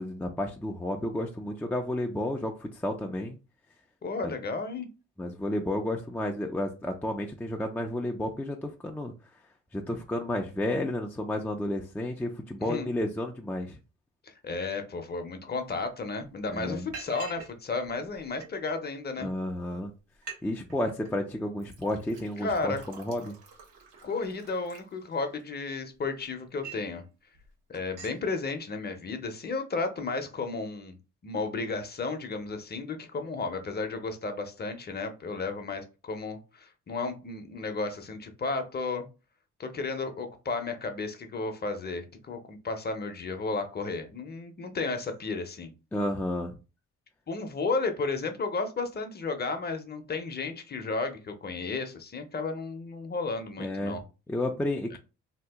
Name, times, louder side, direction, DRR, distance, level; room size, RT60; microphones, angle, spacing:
voice 1, 0.0-3.4 4.2-4.3 5.2-9.1 9.7-13.8 16.5-16.9 19.2-19.9 20.4-23.3 45.9-46.6 53.6-54.0 54.3-55.0, left 1 dB, 5° left, 2 dB, 0.4 m, -31 dB
voice 2, 4.0-4.9 12.6-12.9 14.2-19.3 22.4-22.8 24.0-27.0 27.7-31.0 31.2-39.1 39.6-45.7 47.3-54.0 54.9-55.0, left 3 dB, 35° left, 6 dB, 0.7 m, -33 dB
Liquid, 15.8-15.9 16.2-16.4 16.9-17.5 17.8-18.7 19.4-19.5 19.8-19.9 20.1-20.4 20.7-21.1 21.6-25.4 25.9-26.9 27.3-27.5 27.7-28.2, right 5 dB, 90° right, 1.0 m, -46 dB
2.8 x 2.4 x 3.5 m, 0.31 s
cardioid pair, 90°, 30 cm